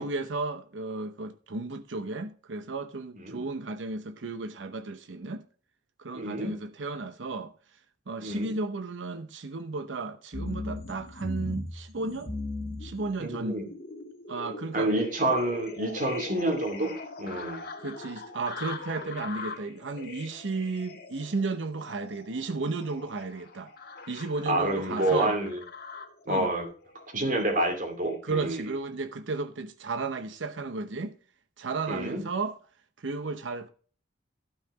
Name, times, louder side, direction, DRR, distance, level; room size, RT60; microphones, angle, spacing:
voice 1, 0.0-5.4 6.0-7.5 8.1-12.3 12.8-13.6 14.3-14.9 17.8-23.7 24.1-25.4 26.3-26.5 28.2-31.1 31.6-32.6 33.0-33.7, right 3 dB, 90° right, 0.8 m, -33 dB
voice 2, 6.1-6.5 8.2-8.6 13.2-13.6 14.7-16.9 17.2-17.7 24.5-25.6 26.3-26.7 27.1-28.7 31.9-32.2, right 1 dB, 45° right, 2.5 m, -28 dB
sound 1, 10.3-26.2 26.9-27.5 28.0-28.1, left 2 dB, 55° left, 1.9 m, -40 dB
12.0 x 5.7 x 4.7 m
head